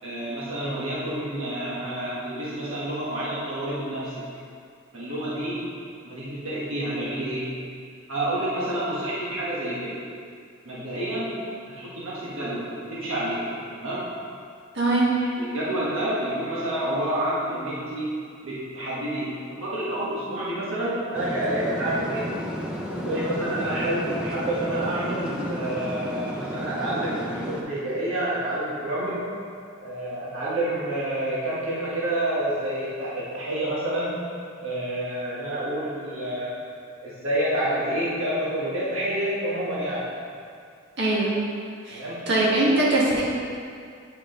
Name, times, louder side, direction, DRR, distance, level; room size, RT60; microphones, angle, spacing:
voice 1, 0.0-4.3 4.9-5.7 6.0-7.6 8.1-10.0 10.6-13.5 13.7-14.1 15.4-18.2 18.4-22.3 22.9-29.3 29.8-34.2 34.6-36.6 37.0-40.1 41.9-42.2, right 1 dB, 80° right, -8 dB, 1.4 m, -28 dB
voice 2, 14.7-15.1 41.0-41.3 41.8-42.0 42.3-43.2, right 2 dB, 55° right, -7 dB, 1.6 m, -21 dB
sound 1, 21.1-27.6, equal, 5° right, 0.6 m, -32 dB
9.0 x 4.9 x 3.8 m, 2.3 s
head